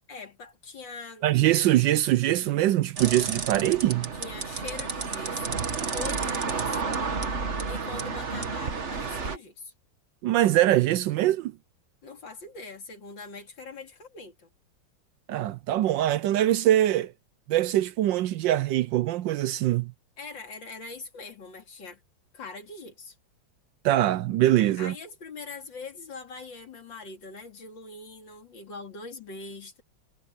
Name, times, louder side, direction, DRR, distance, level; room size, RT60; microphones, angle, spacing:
voice 1, 0.1-1.3 4.1-5.6 5.9-7.0 7.7-9.7 12.0-14.5 20.2-22.0 22.3-23.2 24.8-29.8, left 3 dB, 65° left, 3.5 m, -42 dB
voice 2, 1.2-4.1 10.2-11.5 15.3-17.1 17.5-19.9 23.8-24.9, right 13 dB, 75° right, 1.2 m, -23 dB
sound 1, 3.0-9.4, right 4 dB, 35° right, 1.6 m, -31 dB
omnidirectional pair, 2.2 m